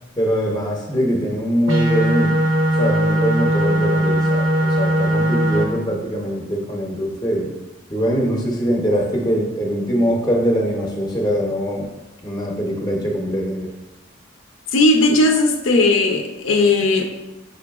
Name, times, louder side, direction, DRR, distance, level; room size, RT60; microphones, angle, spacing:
voice 1, 0.2-2.4 2.7-7.5 7.9-11.8 12.2-13.7, equal, 20° left, 0 dB, 0.6 m, -22 dB
sound 1, 1.7-5.6, right 1 dB, 90° right, 0.7 m, -18 dB
voice 2, 14.7-17.0, left 2 dB, 90° left, 3 dB, 0.5 m, -16 dB
5.3 x 3.8 x 2.3 m, 1.1 s
head